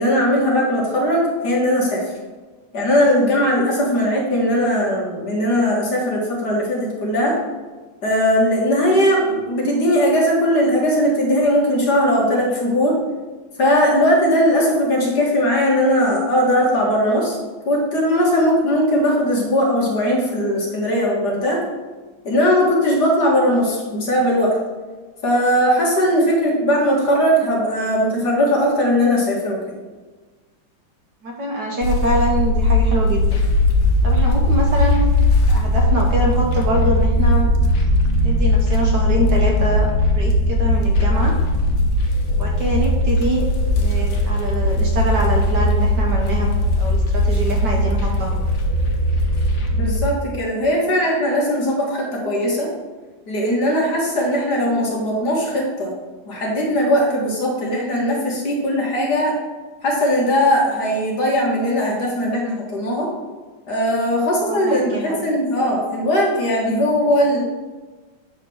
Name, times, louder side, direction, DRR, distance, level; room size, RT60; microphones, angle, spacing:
voice 1, 0.0-2.1 2.7-7.3 8.0-13.0 13.6-17.4 17.7-21.6 22.2-24.6 25.2-29.6 49.7-52.7 53.3-55.9 56.3-59.4 59.8-63.1 63.7-67.4, equal, 55° left, -3 dB, 2.2 m, -19 dB
voice 2, 31.2-33.4 34.0-35.0 35.5-37.5 38.2-39.9 40.1-41.3 42.3-43.5 43.8-46.5 46.8-48.3 64.5-65.2, right 1 dB, 60° right, 0 dB, 1.6 m, -24 dB
sound 1, 31.8-50.0, left 1 dB, 70° left, 1.7 m, -18 dB
7.9 x 3.7 x 6.0 m, 1.3 s
omnidirectional pair, 2.2 m